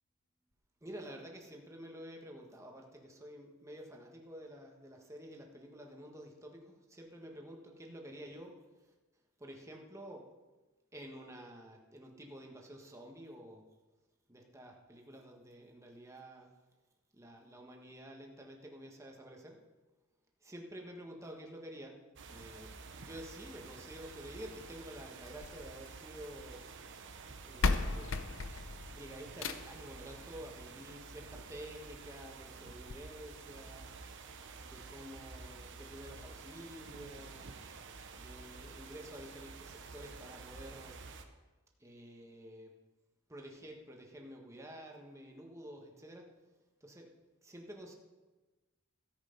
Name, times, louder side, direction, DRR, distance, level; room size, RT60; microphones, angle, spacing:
voice 1, 0.8-8.5 9.4-10.2 10.9-13.6 14.3-16.5 17.1-19.6 20.5-21.9 22.3-22.7 23.0-26.6 27.4-28.1 28.9-33.9 34.6-37.5 38.2-41.0 41.8-42.7 43.3-46.2 46.8-47.0 47.4-47.9, equal, 15° right, 1 dB, 1.5 m, -50 dB
sound 1, 22.2-41.2, right 4 dB, 60° right, 1.0 m, -50 dB
sound 2, 25.2-26.4 27.3-27.4 27.6-29.9 31.2-31.3 31.8-31.9 32.2-32.3 32.9-33.0, left 3 dB, 65° left, 0.7 m, -35 dB
14.0 x 8.1 x 5.3 m, 1.2 s
head